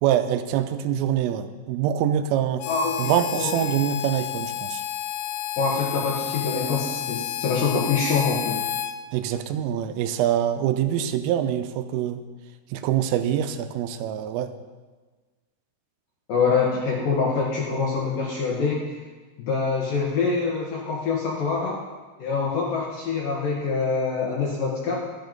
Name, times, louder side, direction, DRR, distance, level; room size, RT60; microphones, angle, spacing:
voice 1, 0.0-2.7 3.0-4.8 9.1-12.2 12.7-14.5, right 10 dB, 85° right, 9 dB, 3.2 m, -24 dB
Harmonica, 2.6-8.9, left 12 dB, 90° left, 2.5 m, -30 dB
voice 2, 2.7-3.8 5.6-8.6 16.3-19.0 19.4-21.8 22.2-25.0, left 4 dB, 70° left, -3 dB, 2.1 m, -25 dB
13.0 x 10.0 x 5.2 m, 1.3 s
omnidirectional pair, 5.8 m